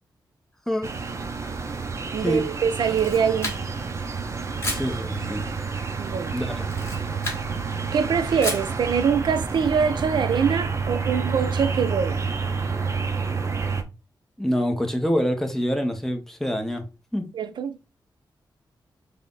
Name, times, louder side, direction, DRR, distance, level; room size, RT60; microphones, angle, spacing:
sound 1, 0.8-13.8, right 5 dB, 35° right, 0.7 m, -29 dB
voice 1, 2.1-3.6 6.0-6.4 7.9-12.2 17.3-17.8, right 6 dB, 75° right, 0.6 m, -24 dB
Camera, 2.7-3.9 4.6-4.9 6.6-7.5 8.4-8.8, left 2 dB, 35° left, 1.9 m, -32 dB
voice 2, 4.7-5.5 6.3-6.7 14.4-16.9 17.1-17.3, equal, 5° left, 0.9 m, -26 dB
3.6 x 3.2 x 3.9 m
wide cardioid pair, 115°, 8 cm